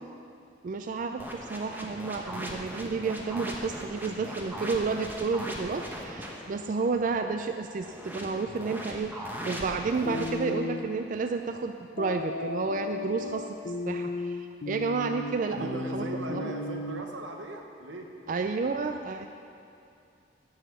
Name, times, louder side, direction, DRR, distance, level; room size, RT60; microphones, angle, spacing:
voice 1, 0.6-16.5 18.3-19.3, right 4 dB, 45° right, 6 dB, 0.3 m, -31 dB
sound 1, 1.2-6.4 7.8-10.3, equal, 10° right, 0.9 m, -39 dB
sound 2, 10.1-10.9 12.0-17.0, left 2 dB, 70° left, 0.5 m, -34 dB
voice 2, 15.5-18.1, right 2 dB, 90° right, 3 dB, 1.1 m, -39 dB
9.8 x 5.6 x 7.3 m, 2.6 s
head